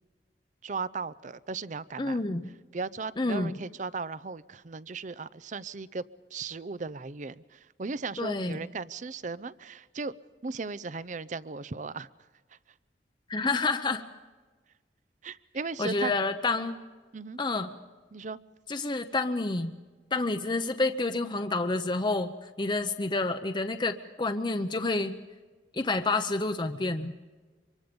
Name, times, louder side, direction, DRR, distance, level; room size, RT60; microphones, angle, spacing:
voice 1, 0.6-2.2 2.7-6.0 6.3-10.1 10.4-12.1 15.2-16.1 17.1-17.4 18.1-18.4, right 4 dB, 45° right, 18 dB, 0.6 m, -36 dB
voice 2, 2.0-2.4 3.2-3.6 8.2-8.6 13.3-14.0 15.8-16.8 17.4-17.7 18.7-19.7 20.1-25.2 25.7-27.1, left 3 dB, 25° left, 8 dB, 0.8 m, -29 dB
25.0 x 23.5 x 5.3 m, 1.3 s
head